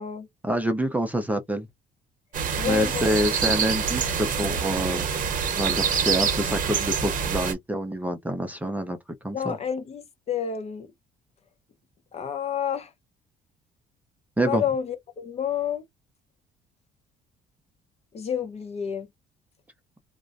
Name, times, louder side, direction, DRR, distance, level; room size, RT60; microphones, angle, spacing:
voice 1, 0.4-1.7 2.6-5.1 5.6-9.0 9.2-9.6 14.4-14.6, right 1 dB, 10° right, 0.5 m, -27 dB
sound 1, 2.3-7.5, right 6 dB, 50° right, 0.8 m, -26 dB
voice 2, 2.6-3.0 9.3-10.9 12.1-12.9 14.5-15.8 18.1-19.1, left 8 dB, 40° left, 0.7 m, -29 dB
2.4 x 2.1 x 2.4 m
cardioid pair, 110°, 17 cm